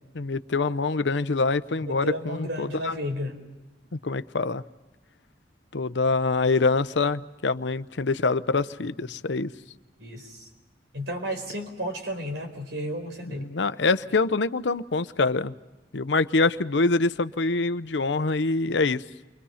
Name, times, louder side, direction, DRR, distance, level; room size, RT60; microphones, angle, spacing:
voice 1, 0.1-3.0 4.0-4.6 5.7-9.5 13.3-15.5 15.9-19.0, left 3 dB, 85° left, 13 dB, 0.8 m, -25 dB
voice 2, 1.8-3.4 10.0-10.5 10.9-13.5, equal, 75° right, 4 dB, 4.7 m, -33 dB
30.0 x 24.5 x 5.7 m, 1.1 s
head